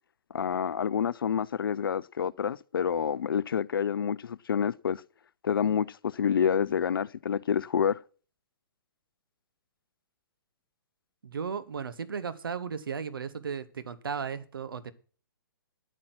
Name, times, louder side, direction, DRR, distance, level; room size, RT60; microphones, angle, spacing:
voice 1, 0.3-5.0 5.4-8.0, left 7 dB, 70° left, 0.4 m, -28 dB
voice 2, 11.2-14.9, right 6 dB, 75° right, 1.1 m, -35 dB
9.9 x 9.1 x 6.0 m
figure-of-eight pair, 125°, 12 cm